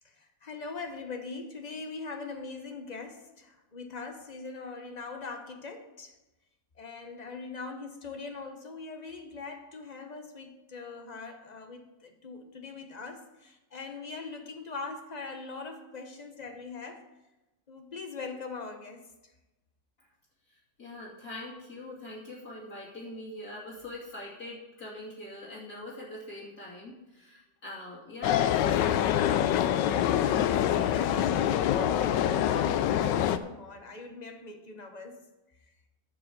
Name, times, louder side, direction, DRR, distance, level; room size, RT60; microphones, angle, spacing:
voice 1, 0.2-6.2 6.8-17.1 17.7-19.3 30.1-35.2, left 4 dB, 30° left, 5 dB, 1.0 m, -41 dB
voice 2, 20.5-29.2, left 1 dB, 55° left, -6 dB, 2.9 m, -43 dB
sound 1, 28.2-33.4, left 10 dB, 80° left, 1.2 m, -25 dB
11.5 x 4.9 x 7.7 m, 1.0 s
omnidirectional pair, 1.9 m